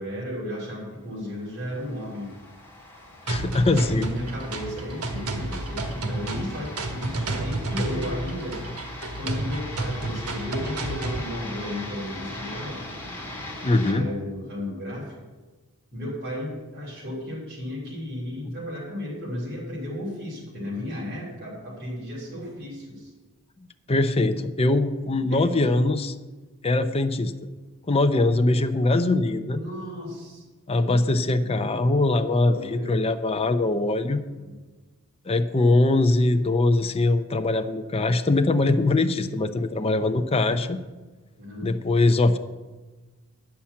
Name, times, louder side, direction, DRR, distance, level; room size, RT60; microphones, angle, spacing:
voice 1, 0.0-2.3 3.6-8.6 9.2-12.8 13.9-15.1 15.9-23.1 25.2-25.5 29.5-30.4 31.4-31.6 32.4-33.0 34.4-34.5 40.4-40.6 41.4-41.7, left 1 dB, 45° right, -6 dB, 3.6 m, -34 dB
sound 1, 1.4-13.9, left 1 dB, 10° left, 2.2 m, -40 dB
voice 2, 3.3-4.1 13.6-14.1 23.9-26.1 26.6-27.3 27.9-29.6 30.7-34.2 35.3-40.8 41.6-42.4, left 2 dB, 25° left, 8 dB, 0.5 m, -22 dB
sound 2, 3.3-11.3, right 2 dB, 90° right, 1.4 m, -31 dB
10.0 x 5.8 x 8.4 m, 1.2 s
head